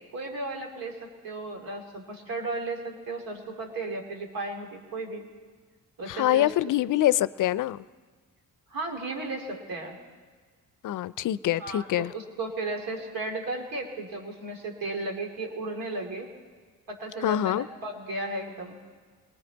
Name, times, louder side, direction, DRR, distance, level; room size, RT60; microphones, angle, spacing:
voice 1, 0.1-5.2 6.0-6.5 8.7-10.0 11.6-16.3 16.9-18.8, right 2 dB, 70° right, 2 dB, 2.7 m, -35 dB
voice 2, 6.1-7.8 10.8-12.1 17.2-17.7, left 13 dB, 60° left, 18 dB, 0.5 m, -25 dB
19.5 x 19.0 x 3.9 m, 1.5 s
cardioid pair, 75°, 35 cm